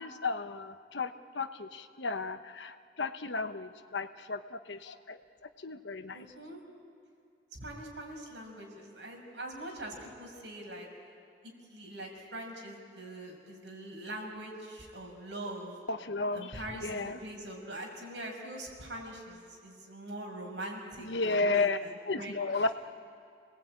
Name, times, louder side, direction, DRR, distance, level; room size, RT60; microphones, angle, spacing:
voice 1, 0.0-5.2 5.6-6.2 15.9-17.2 21.0-21.8 22.1-22.7, left 3 dB, 75° left, 9 dB, 1.1 m, -33 dB
voice 2, 6.1-6.6 7.5-10.9 11.4-15.8 16.3-22.6, right 1 dB, 75° right, 0 dB, 6.0 m, -43 dB
29.5 x 19.5 x 8.9 m, 2.4 s
head